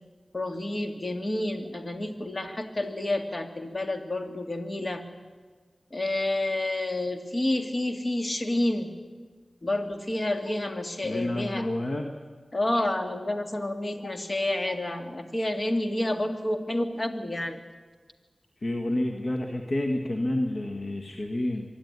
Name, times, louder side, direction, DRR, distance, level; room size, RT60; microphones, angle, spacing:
voice 1, 0.3-5.0 5.9-8.9 9.6-11.7 12.5-17.6, left 1 dB, 40° left, 6 dB, 2.3 m, -29 dB
voice 2, 11.0-12.1 18.6-21.6, left 1 dB, 55° left, 3 dB, 1.7 m, -29 dB
24.5 x 11.0 x 9.7 m, 1.5 s
cardioid pair, 40°, 0 cm